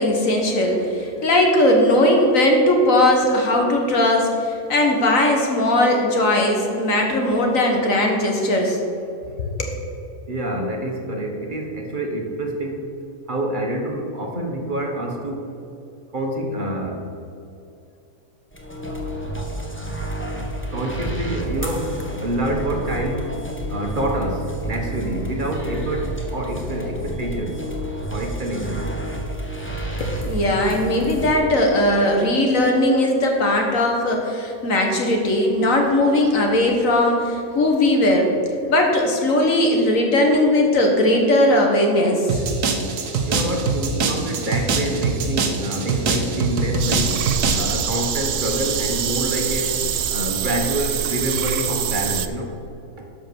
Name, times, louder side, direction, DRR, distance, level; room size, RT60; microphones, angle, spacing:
voice 1, 0.0-8.8 9.6-9.7 30.0-38.3 38.7-42.4, left 1 dB, 55° left, 1 dB, 1.9 m, -18 dB
voice 2, 10.3-12.9 13.3-15.5 16.1-17.1 20.7-23.4 23.7-27.6 28.1-28.9 43.3-47.2 47.5-49.7 50.1-52.5, right 1 dB, 35° right, 1 dB, 1.4 m, -27 dB
Collage sounds, 18.5-31.3, right 1 dB, 10° left, 1.0 m, -30 dB
sound 1, 42.3-47.8, right 4 dB, 90° right, 1.6 m, -23 dB
sound 2, 46.8-52.3, right 9 dB, 65° right, 0.7 m, -25 dB
12.0 x 5.4 x 7.0 m, 2.7 s
omnidirectional pair, 1.6 m